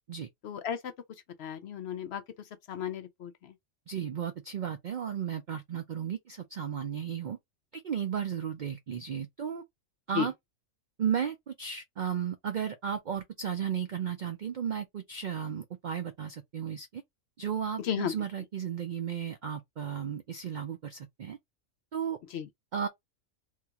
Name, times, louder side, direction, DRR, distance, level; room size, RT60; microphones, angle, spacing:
voice 1, 0.4-0.9 1.4-2.2 2.7-3.5 10.1-10.3 17.8-18.1 22.3-22.5, left 8 dB, 65° left, 0.7 m, -34 dB
voice 2, 3.9-7.4 7.7-9.6 10.1-10.3 11.0-17.0 17.4-21.4 21.9-22.2 22.7-22.9, right 8 dB, 80° right, 0.4 m, -34 dB
3.7 x 2.4 x 2.8 m
omnidirectional pair, 1.4 m